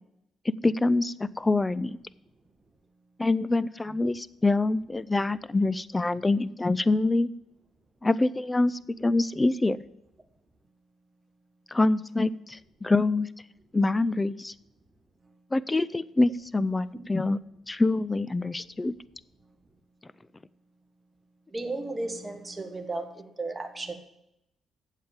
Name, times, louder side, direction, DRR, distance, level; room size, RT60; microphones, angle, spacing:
voice 1, 0.6-2.0 3.2-7.3 8.0-9.8 11.7-13.3 13.7-14.5 15.5-17.4 17.7-18.9, left 2 dB, 20° left, 19 dB, 0.4 m, -25 dB
voice 2, 21.5-24.0, right 2 dB, 20° right, 6 dB, 1.4 m, -34 dB
8.6 x 7.4 x 7.2 m, 0.84 s
cardioid pair, 90°, 0 cm